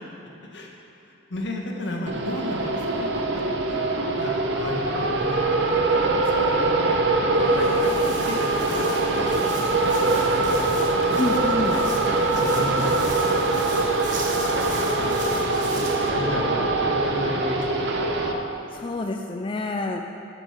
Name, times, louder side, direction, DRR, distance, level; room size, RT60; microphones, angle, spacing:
voice 1, 1.0-3.2 3.6-9.1 9.4-10.0 10.4-11.8 12.3-13.0 13.4-14.4 14.8-15.1 15.7-17.9, left 1 dB, 75° left, 0 dB, 1.4 m, -35 dB
sound 1, 2.1-18.3, right 2 dB, 70° right, 0.9 m, -23 dB
Walk footsteps, 7.3-16.1, right 4 dB, 40° right, 1.2 m, -39 dB
voice 2, 11.2-11.8 18.7-20.0, left 2 dB, 25° left, 4 dB, 0.3 m, -28 dB
10.5 x 7.0 x 5.8 m, 2.7 s
head